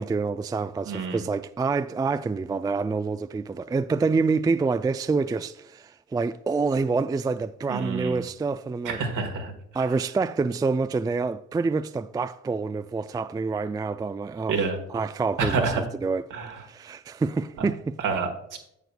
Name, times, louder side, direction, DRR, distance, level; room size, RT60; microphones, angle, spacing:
voice 1, 0.0-9.0 9.7-14.6 14.9-16.3 16.7-18.0, right 4 dB, 10° right, 0.3 m, -27 dB
voice 2, 0.8-1.2 7.7-8.2 8.8-9.5 14.5-14.8 15.4-15.8 16.3-16.5 17.6-17.7 18.0-18.6, right 4 dB, 70° right, 1.6 m, -28 dB
11.0 x 7.8 x 2.3 m
hypercardioid pair, 45°, 33 cm